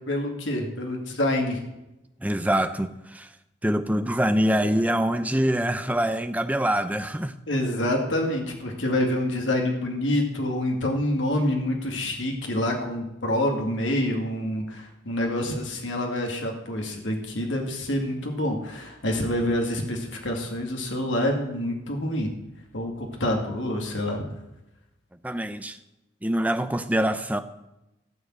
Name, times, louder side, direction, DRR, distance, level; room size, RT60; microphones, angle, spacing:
voice 1, 0.1-1.6 7.5-22.3 22.7-24.2, left 1 dB, 80° left, 2.2 m, -27 dB
voice 2, 2.2-3.3 3.6-7.3 25.2-25.8 26.2-27.4, right 1 dB, 10° right, 0.6 m, -24 dB
14.5 x 6.4 x 7.6 m
head